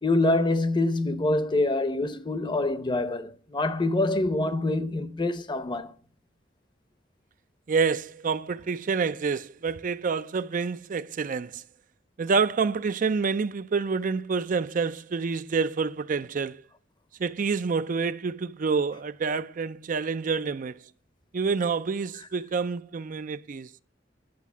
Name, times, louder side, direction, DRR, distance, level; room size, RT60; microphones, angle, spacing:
voice 1, 0.0-5.9, left 2 dB, 25° left, 0.8 m, -25 dB
voice 2, 7.7-11.6 12.2-16.6 17.2-20.8 21.3-23.7, right 5 dB, 45° right, 0.4 m, -28 dB
10.5 x 6.5 x 7.1 m
head